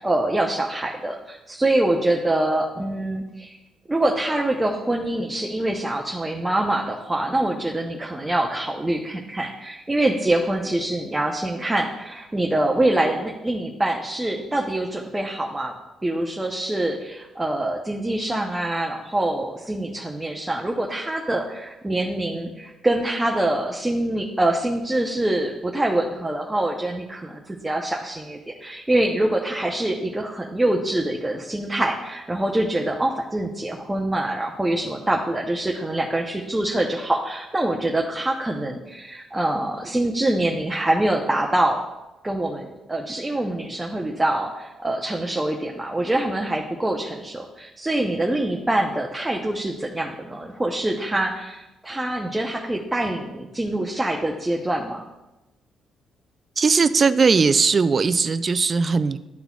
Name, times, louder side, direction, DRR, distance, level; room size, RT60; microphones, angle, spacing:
voice 1, 0.0-3.6 3.9-15.7 16.0-41.8 42.2-55.0, right 1 dB, 15° right, -1 dB, 0.7 m, -25 dB
voice 2, 56.6-59.2, right 5 dB, 40° right, 13 dB, 0.3 m, -19 dB
11.5 x 3.9 x 2.3 m, 1.0 s
cardioid pair, 90°, 0 cm